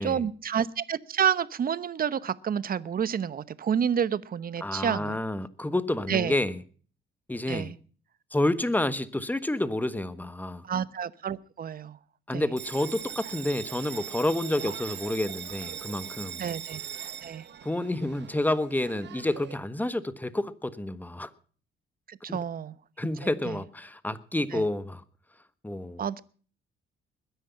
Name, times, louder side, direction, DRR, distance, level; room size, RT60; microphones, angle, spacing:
voice 1, 0.0-5.2 6.1-6.4 7.5-7.8 10.6-12.0 12.3-12.5 16.4-16.8 17.2-17.4 22.1-22.8 23.4-23.6 24.5-24.7 26.0-26.2, right 8 dB, 45° right, 1.0 m, -29 dB
voice 2, 4.6-6.6 7.3-7.7 8.3-10.6 12.3-16.4 17.6-21.3 22.3-22.4 23.0-25.0 25.6-26.0, left 1 dB, 10° left, 1.4 m, -29 dB
Bell, 12.6-19.6, right 9 dB, 60° right, 1.3 m, -40 dB
21.0 x 10.5 x 5.7 m
cardioid pair, 90°, 20 cm